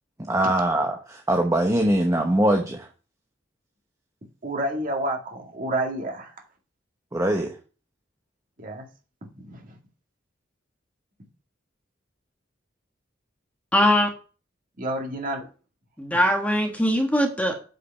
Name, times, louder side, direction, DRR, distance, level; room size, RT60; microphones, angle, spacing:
voice 1, 0.3-2.9 7.1-7.6, right 1 dB, 15° right, 3 dB, 0.9 m, -22 dB
voice 2, 4.4-6.3 8.6-8.9 9.4-9.6 14.8-15.5, right 1 dB, 45° right, 1 dB, 2.1 m, -29 dB
voice 3, 13.7-14.1 16.0-17.5, equal, 10° left, 2 dB, 1.4 m, -21 dB
8.4 x 5.1 x 5.6 m, 0.38 s
head